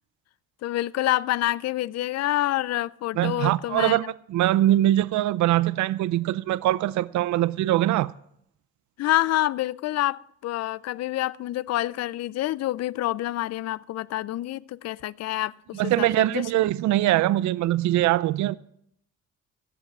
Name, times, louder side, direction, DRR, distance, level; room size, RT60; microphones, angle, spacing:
voice 1, 0.6-4.1 9.0-16.4, left 15 dB, 60° left, 0.4 m, -27 dB
voice 2, 3.2-4.0 4.3-8.1 15.7-18.6, right 14 dB, 70° right, 0.5 m, -22 dB
14.5 x 8.0 x 6.0 m
cardioid pair, 90°, 30 cm